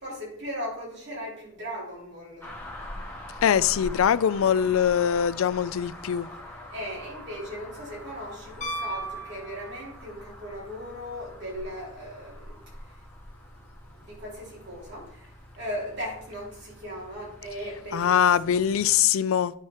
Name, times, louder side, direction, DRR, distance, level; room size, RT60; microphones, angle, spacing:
voice 1, 0.0-2.5 6.7-12.6 14.1-15.2 15.6-18.2, equal, 55° right, 3.6 m, -37 dB
sound 1, 2.4-19.0, left 1 dB, 10° left, 1.6 m, -44 dB
voice 2, 3.4-6.3 17.9-19.5, left 9 dB, 80° left, 0.4 m, -22 dB
Piano, 8.6-10.2 12.5-12.6, right 2 dB, 35° left, 1.0 m, -36 dB
10.5 x 4.3 x 4.8 m
head